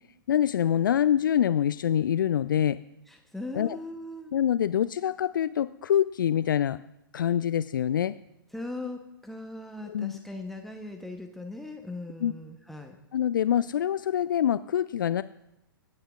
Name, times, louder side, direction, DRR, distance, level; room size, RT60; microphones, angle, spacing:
voice 1, 0.3-2.8 3.5-3.8 4.3-6.8 7.1-8.1 9.8-10.1 12.2-12.3 13.1-15.2, left 10 dB, 60° left, 16 dB, 0.4 m, -25 dB
voice 2, 3.1-4.3 8.5-13.0, left 2 dB, ahead, 3 dB, 0.9 m, -39 dB
26.0 x 8.7 x 2.5 m, 0.86 s
figure-of-eight pair, 115°, 12 cm